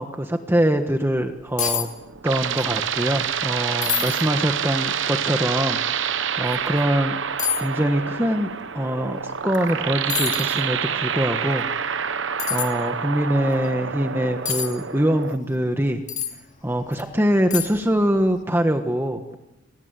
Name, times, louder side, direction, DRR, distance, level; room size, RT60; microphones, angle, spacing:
voice 1, 0.0-1.9 2.2-5.8 6.4-7.2 7.6-8.5 8.7-11.7 12.5-16.0 16.6-19.4, equal, 10° right, 5 dB, 1.4 m, -23 dB
sound 1, 1.2-1.3 1.6-1.9 2.2-2.7 3.1-3.2 3.8-4.2 4.9-5.0 6.5-6.6 7.4-7.7 9.5-9.7 10.1-10.6 12.4-12.7 14.5-14.7 16.1-16.4 16.9-17.0 17.5-17.9 18.2-18.3, left 9 dB, 35° left, 2.7 m, -26 dB
sound 2, 1.7-15.4, right 7 dB, 65° right, 1.0 m, -27 dB
30.0 x 24.0 x 8.3 m, 0.95 s
head